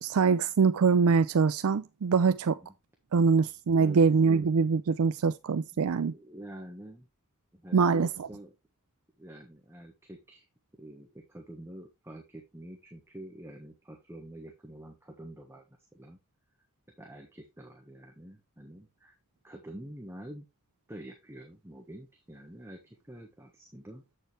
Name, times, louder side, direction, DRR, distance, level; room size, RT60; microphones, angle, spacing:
voice 1, 0.0-2.6 3.1-6.1 7.7-8.1, right 5 dB, 70° right, 0.4 m, -24 dB
voice 2, 6.1-7.1 7.5-8.5 9.2-10.4 10.7-16.2 17.0-19.1 19.4-20.5 20.9-24.0, right 1 dB, 10° right, 1.3 m, -47 dB
8.0 x 6.7 x 3.3 m
head